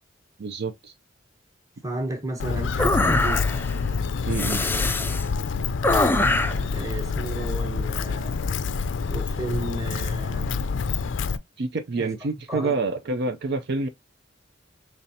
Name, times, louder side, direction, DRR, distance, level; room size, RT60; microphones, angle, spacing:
voice 1, 0.4-0.9 4.2-4.6 11.6-13.9, right 3 dB, 60° right, 0.5 m, -27 dB
voice 2, 1.8-3.5 4.5-4.9 5.2-5.4 6.7-8.7 9.1-10.6 12.0-12.1 12.5-12.7, right 2 dB, 20° right, 1.1 m, -33 dB
Walk footsteps, 2.4-11.4, left 5 dB, 70° left, 0.4 m, -27 dB
sound 1, 2.8-3.7 4.3-5.2 5.8-6.7, left 2 dB, 10° left, 0.3 m, -23 dB
5.4 x 3.2 x 2.7 m
head